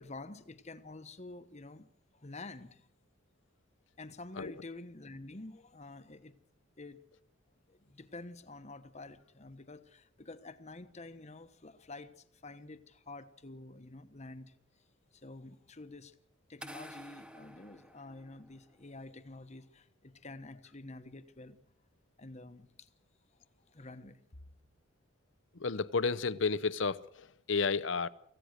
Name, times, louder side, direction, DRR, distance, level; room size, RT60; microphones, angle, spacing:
voice 1, 0.0-2.9 4.0-6.3 6.8-7.0 7.7-14.5 15.1-16.1 16.5-21.6 22.2-22.9 23.7-24.2, left 2 dB, 35° left, 1.2 m, -49 dB
sound 1, 16.6-18.7, equal, 5° right, 0.8 m, -50 dB
voice 2, 25.5-28.1, left 4 dB, 65° left, 0.8 m, -32 dB
25.5 x 16.0 x 6.6 m
head